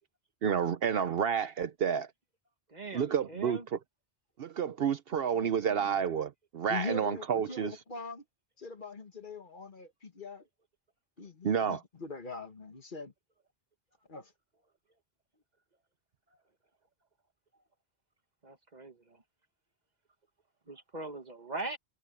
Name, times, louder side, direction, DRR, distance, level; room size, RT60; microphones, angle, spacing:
voice 1, 0.4-2.1 2.9-3.6 4.4-7.8 11.4-11.8, right 7 dB, 65° right, 0.9 m, -30 dB
voice 2, 2.7-3.6 5.2-6.0 18.4-19.2 20.7-21.8, right 3 dB, 40° right, 1.7 m, -42 dB
voice 3, 6.7-8.2 8.6-10.4 11.2-13.1 14.1-14.3, left 3 dB, 50° left, 1.6 m, -42 dB
omnidirectional pair, 1.1 m